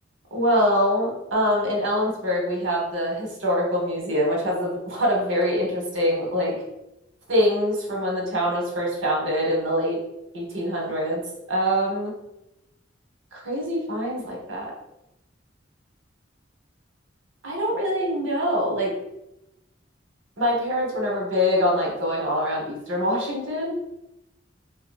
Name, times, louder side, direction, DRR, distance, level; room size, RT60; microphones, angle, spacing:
voice 1, 0.3-6.5 7.3-10.0 10.3-11.2 11.5-12.1 13.3-14.7 17.4-18.9 20.4-23.8, equal, 85° right, -1 dB, 0.9 m, -24 dB
2.7 x 2.7 x 2.3 m, 0.88 s
head